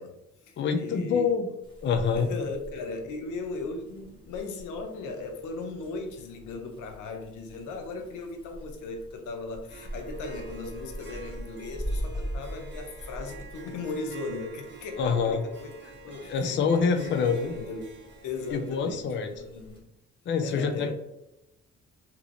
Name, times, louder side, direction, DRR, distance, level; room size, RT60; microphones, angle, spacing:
voice 1, 0.0-1.3 2.1-17.9 18.2-19.8 20.4-20.9, left 3 dB, 85° left, 4 dB, 0.6 m, -37 dB
voice 2, 0.6-1.5 1.8-2.3 15.0-15.4 16.3-17.5 18.5-19.3 20.3-20.9, left 5 dB, 40° left, 6 dB, 0.4 m, -26 dB
sound 1, 1.6-19.8, equal, 15° left, 1.0 m, -42 dB
Harp, 9.7-18.8, right 3 dB, 40° right, 0.8 m, -48 dB
3.0 x 2.9 x 2.5 m, 0.89 s
cardioid pair, 90°, 30 cm